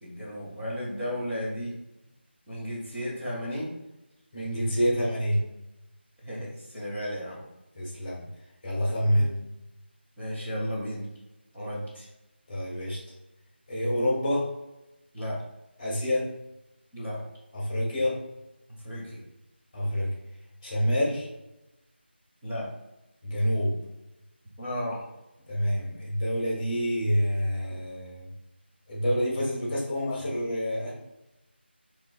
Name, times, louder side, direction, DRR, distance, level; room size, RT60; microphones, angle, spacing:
voice 1, 0.0-1.8 2.5-3.7 6.2-7.4 9.0-9.3 10.2-11.1 11.5-12.1 15.1-15.4 16.9-17.2 18.7-19.2 22.4-22.7 24.6-25.0, equal, 5° right, -11 dB, 0.4 m, -34 dB
voice 2, 4.3-5.4 7.7-8.3 8.6-9.4 12.5-13.0 13.7-14.5 15.8-16.3 17.5-18.2 19.7-20.1 20.6-21.3 23.2-23.8 25.5-28.3 28.9-30.9, equal, 15° left, -5 dB, 1.2 m, -27 dB
7.3 x 3.0 x 2.2 m, 0.95 s
figure-of-eight pair, 175°, 6 cm